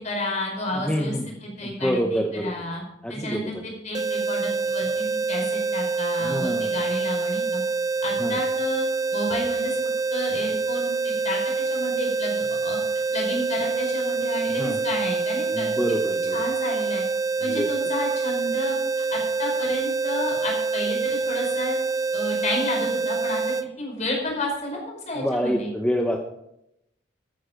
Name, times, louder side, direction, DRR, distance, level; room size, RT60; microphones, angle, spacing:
voice 1, 0.0-1.1 1.4-2.8 3.1-7.6 8.0-8.8 9.1-9.8 10.1-12.8 13.1-15.7 16.3-17.0 17.4-18.8 19.1-21.8 22.1-23.4 23.8-25.7, left 1 dB, 40° left, 0 dB, 4.9 m, -31 dB
voice 2, 0.7-1.2 1.6-2.5 3.0-3.6 6.2-6.7 8.2-8.4 14.5-14.8 15.5-16.4 17.4-17.7 25.1-26.2, equal, 5° left, 2 dB, 0.9 m, -27 dB
sound 1, 3.9-23.7, right 4 dB, 20° right, 0.4 m, -26 dB
14.0 x 9.6 x 5.1 m, 0.82 s
head